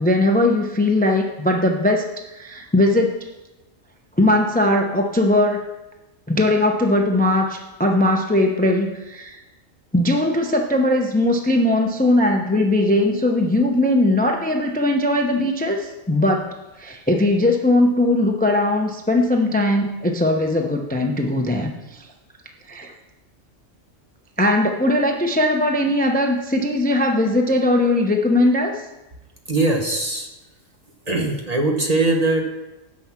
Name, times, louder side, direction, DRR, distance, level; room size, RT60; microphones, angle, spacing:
voice 1, 0.0-3.3 4.2-5.7 6.3-9.4 9.9-22.0 22.7-22.9 24.4-28.8, left 1 dB, 10° left, 3 dB, 0.6 m, -19 dB
voice 2, 29.5-30.3 31.1-32.4, right 2 dB, 35° right, 2 dB, 1.0 m, -20 dB
9.6 x 6.2 x 5.9 m, 1.0 s
omnidirectional pair, 1.4 m